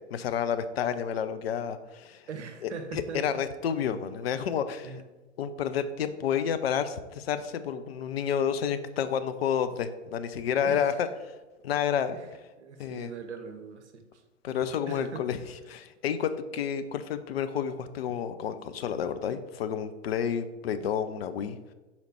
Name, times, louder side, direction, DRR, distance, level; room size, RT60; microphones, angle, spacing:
voice 1, 0.1-2.3 2.6-4.9 5.4-11.3 11.6-12.2 12.8-13.1 14.4-15.4 15.7-21.6, left 8 dB, 55° left, 11 dB, 0.5 m, -30 dB
voice 2, 2.3-3.4 4.8-5.0 10.6-10.9 12.1-12.3 12.6-14.2 14.9-15.3, right 5 dB, 65° right, 7 dB, 0.9 m, -41 dB
5.2 x 4.2 x 4.3 m, 1.2 s
figure-of-eight pair, 105°, 38 cm